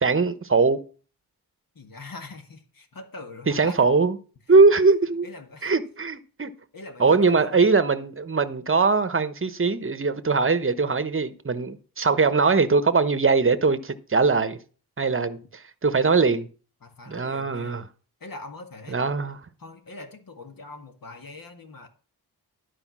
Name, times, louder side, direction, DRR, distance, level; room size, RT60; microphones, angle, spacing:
voice 1, 0.0-0.8 3.5-4.2 4.5-5.3 5.6-6.5 7.0-14.6 15.0-16.5 17.1-17.8 18.9-19.4, right 4 dB, 30° right, 1.0 m, -21 dB
voice 2, 1.8-3.9 5.2-5.7 6.7-7.7 16.8-17.9 18.2-19.0 19.6-21.9, left 3 dB, 55° left, 1.8 m, -42 dB
12.0 x 5.0 x 6.1 m
cardioid pair, 65°, 40 cm